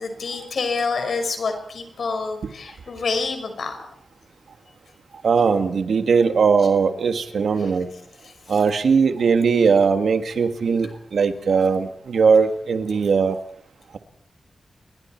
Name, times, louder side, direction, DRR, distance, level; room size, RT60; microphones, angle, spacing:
voice 1, 0.0-3.9 8.5-8.6, left 4 dB, 60° left, 6 dB, 5.5 m, -27 dB
voice 2, 5.2-7.9 8.5-13.4, right 5 dB, 70° right, 7 dB, 1.8 m, -19 dB
29.5 x 23.0 x 4.6 m, 0.64 s
wide cardioid pair, 180°, 0 cm